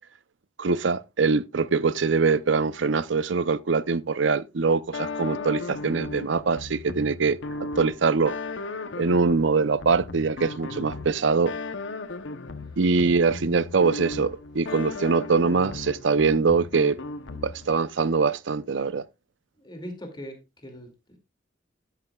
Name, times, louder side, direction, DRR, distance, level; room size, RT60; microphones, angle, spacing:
voice 1, 0.6-8.3 9.0-11.5 12.8-17.0 17.4-19.0, right 4 dB, 85° right, 0.6 m, -23 dB
sound 1, 4.9-17.8, left 3 dB, 80° left, 0.8 m, -36 dB
voice 2, 19.6-21.2, equal, 25° left, 2.4 m, -41 dB
12.0 x 10.5 x 2.3 m
head